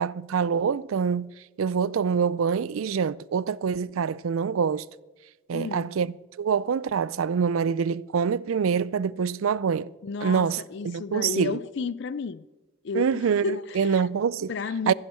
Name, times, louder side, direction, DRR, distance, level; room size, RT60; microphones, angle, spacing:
voice 1, 0.0-4.9 5.5-6.1 6.4-9.9 10.2-11.6 12.9-14.5 14.9-15.0, right 6 dB, 80° right, 0.4 m, -25 dB
voice 2, 5.5-6.0 10.0-12.5 12.8-14.1 14.5-14.9, left 5 dB, 60° left, 0.4 m, -32 dB
14.5 x 10.5 x 5.7 m
head